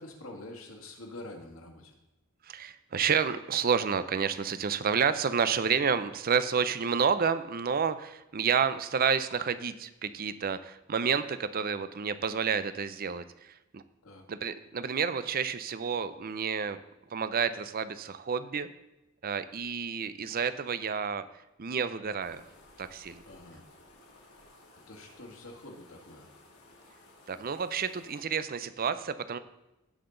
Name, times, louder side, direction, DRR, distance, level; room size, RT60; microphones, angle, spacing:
voice 1, 0.0-1.9 14.0-14.3 23.2-23.6 24.8-26.3, left 2 dB, 65° left, 2 dB, 2.0 m, -46 dB
voice 2, 2.5-13.8 14.3-16.8 17.1-18.7 19.2-21.2 21.6-22.4 22.8-23.2 27.3-29.4, right 6 dB, 40° right, 13 dB, 0.5 m, -30 dB
sound 1, 22.2-28.2, left 2 dB, 80° left, 2.6 m, -57 dB
17.0 x 5.8 x 3.9 m, 0.94 s
head